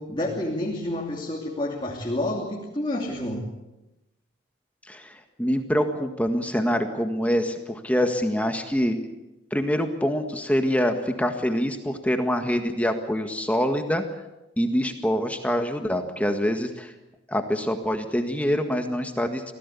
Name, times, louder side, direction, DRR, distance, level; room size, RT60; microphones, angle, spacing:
voice 1, 0.0-3.5, left 1 dB, 25° left, -1 dB, 2.9 m, -29 dB
voice 2, 4.9-9.0 9.5-14.0 14.6-16.9 17.3-19.4, equal, 5° left, 5 dB, 1.7 m, -25 dB
25.5 x 17.5 x 8.4 m, 0.98 s
head